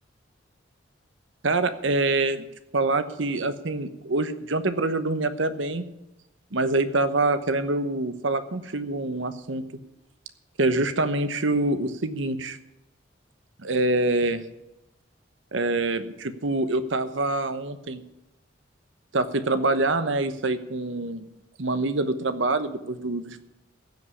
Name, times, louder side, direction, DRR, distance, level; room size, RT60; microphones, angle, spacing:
voice 1, 1.4-2.5 2.7-5.9 6.5-9.6 10.6-12.6 13.6-14.4 15.5-18.0 19.1-21.3 21.6-23.4, right 2 dB, 75° right, 11 dB, 1.0 m, -25 dB
15.5 x 5.4 x 9.8 m, 0.93 s
head